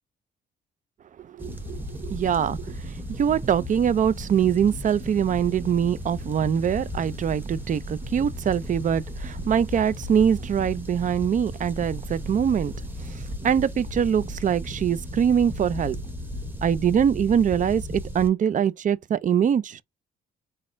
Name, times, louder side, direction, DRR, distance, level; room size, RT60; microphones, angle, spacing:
sound 1, 1.4-18.3, equal, 10° right, 1.1 m, -35 dB
voice 1, 1.4-12.7 13.1-13.2 13.4-16.0 16.6-19.8, right 8 dB, 40° right, 0.4 m, -23 dB
4.0 x 2.5 x 3.8 m
cardioid pair, 90°, 20 cm